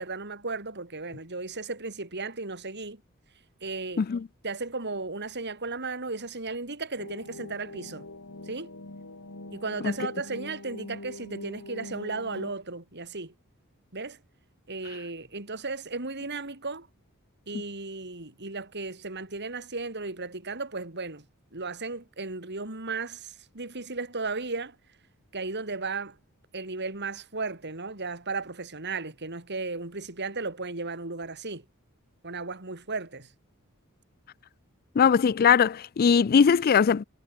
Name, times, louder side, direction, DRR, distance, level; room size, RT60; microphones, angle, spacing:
voice 1, 0.0-3.0 3.6-4.0 4.4-8.1 8.5-8.7 9.5-13.3 13.9-14.2 14.7-16.9 17.5-21.2 21.5-24.7 25.3-26.2 26.5-31.6 32.2-33.3, right 3 dB, 55° right, 4.6 m, -35 dB
voice 2, 4.0-4.3 9.8-9.9 35.0-37.0, left 6 dB, 45° left, 0.4 m, -20 dB
sound 1, 7.0-12.5, left 2 dB, 70° left, 3.0 m, -43 dB
head